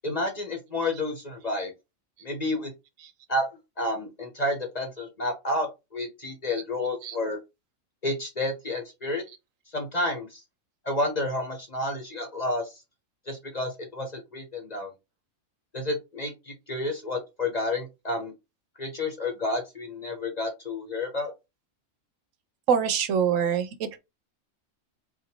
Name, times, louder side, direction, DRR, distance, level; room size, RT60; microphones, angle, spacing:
voice 1, 0.0-1.7 2.2-2.7 3.3-3.5 3.8-7.4 8.0-9.2 9.7-10.4 10.8-12.7 13.3-14.9 15.7-18.3 18.8-21.3, left 2 dB, 35° left, 1.0 m, -30 dB
voice 2, 22.7-24.0, right 7 dB, 75° right, 1.0 m, -24 dB
4.2 x 2.6 x 2.8 m
omnidirectional pair, 1.4 m